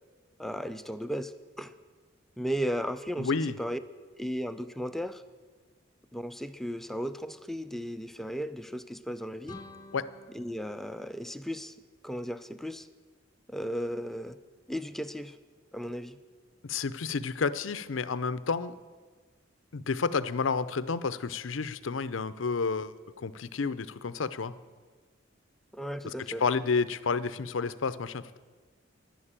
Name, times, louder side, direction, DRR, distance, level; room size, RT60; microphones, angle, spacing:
voice 1, 0.4-1.7 2.4-3.8 4.2-5.2 6.1-9.6 10.3-11.7 12.0-12.9 13.5-14.4 14.7-15.4 15.7-16.2 25.7-26.4, equal, ahead, 10 dB, 0.5 m, -35 dB
voice 2, 3.2-3.5 9.9-10.1 16.6-18.8 19.7-24.5 26.0-28.4, left 5 dB, 85° left, 15 dB, 0.6 m, -30 dB
sound 1, 9.4-12.2, left 2 dB, 20° left, 0.9 m, -51 dB
11.0 x 10.5 x 8.8 m, 1.4 s
head